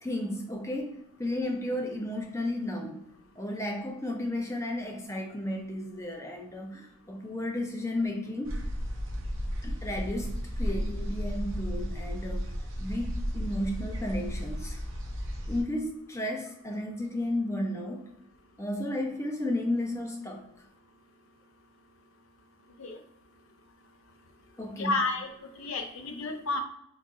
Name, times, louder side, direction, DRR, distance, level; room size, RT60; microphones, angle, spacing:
voice 1, 0.0-8.6 9.6-12.5 12.8-14.8 15.5-18.1 18.6-20.4 24.6-25.0, left 1 dB, 15° left, 0.4 m, -33 dB
sound 1, 8.4-15.6, equal, 70° right, 0.7 m, -34 dB
voice 2, 24.8-25.3 25.6-26.6, left 3 dB, 80° left, 0.5 m, -31 dB
3.8 x 2.7 x 2.4 m
head